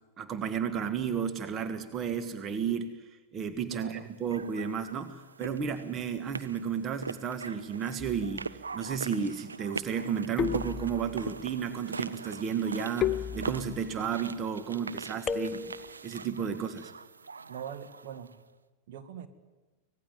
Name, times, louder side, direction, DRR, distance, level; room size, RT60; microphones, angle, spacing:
voice 1, 0.2-15.8 16.0-16.9, right 7 dB, 30° right, 10 dB, 1.6 m, -33 dB
voice 2, 3.7-4.1 16.5-16.6 17.5-18.3 18.9-19.3, right 9 dB, 50° right, 9 dB, 1.9 m, -42 dB
sound 1, 4.3-18.4, right 4 dB, 75° right, 0.9 m, -42 dB
sound 2, 8.0-8.5 10.4-11.3 13.0-14.0 15.3-16.0, left 8 dB, 25° left, 0.7 m, -33 dB
25.0 x 19.0 x 9.3 m, 1.2 s
figure-of-eight pair, 90°, 0 cm